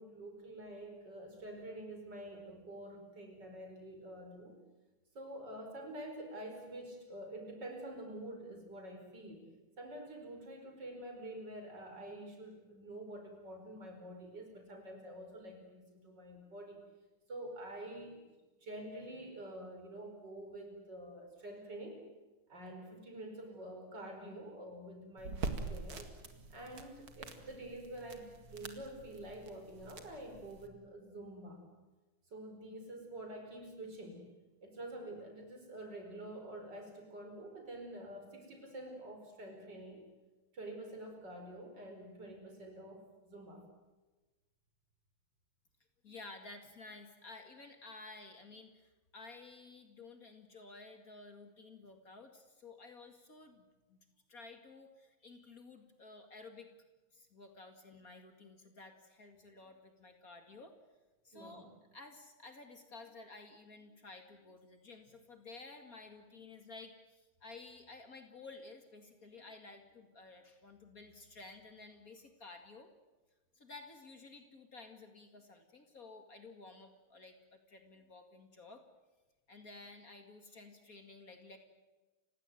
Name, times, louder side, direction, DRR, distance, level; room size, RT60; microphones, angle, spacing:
voice 1, 0.0-4.5 5.1-9.4 9.8-16.8 17.3-18.3 18.6-22.0 22.5-26.1 26.5-31.6 32.3-34.2 34.6-40.1 40.5-43.7 61.3-61.7, right 1 dB, 55° right, 4 dB, 5.6 m, -47 dB
sound 1, 25.2-30.7, right 4 dB, 75° right, 2.8 m, -45 dB
voice 2, 46.0-54.0 54.3-56.7 57.1-60.7 61.2-72.9 73.5-78.8 79.5-81.6, left 3 dB, 45° left, 6 dB, 2.5 m, -53 dB
29.5 x 17.0 x 9.2 m, 1.1 s
omnidirectional pair, 2.3 m